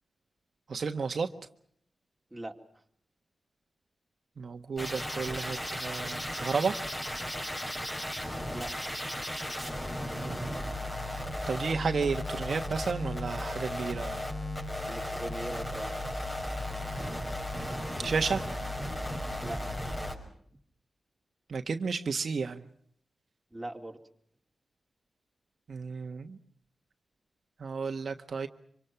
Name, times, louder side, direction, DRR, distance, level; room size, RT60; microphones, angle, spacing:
voice 1, 0.7-1.3 4.4-6.8 10.2-10.7 11.5-14.2 18.0-18.4 21.5-22.6 25.7-26.4 27.6-28.5, right 5 dB, 70° right, 6 dB, 1.4 m, -32 dB
sound 1, 4.8-20.2, left 1 dB, 20° left, 5.7 m, -35 dB
voice 2, 14.9-15.9 19.4-19.6 23.5-24.0, right 1 dB, 15° right, 2 dB, 3.0 m, -40 dB
26.0 x 25.5 x 5.9 m, 0.65 s
wide cardioid pair, 80°, 0 cm